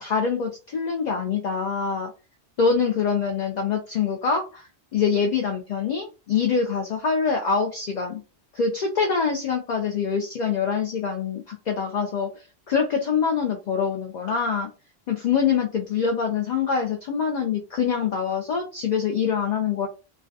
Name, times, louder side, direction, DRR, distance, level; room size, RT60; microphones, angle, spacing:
voice 1, 0.0-2.1 2.6-4.7 4.9-8.2 8.5-12.3 12.7-14.7 15.1-19.9, left 6 dB, 55° left, 2 dB, 0.5 m, -24 dB
2.3 x 2.2 x 2.5 m, 0.31 s
omnidirectional pair, 1.1 m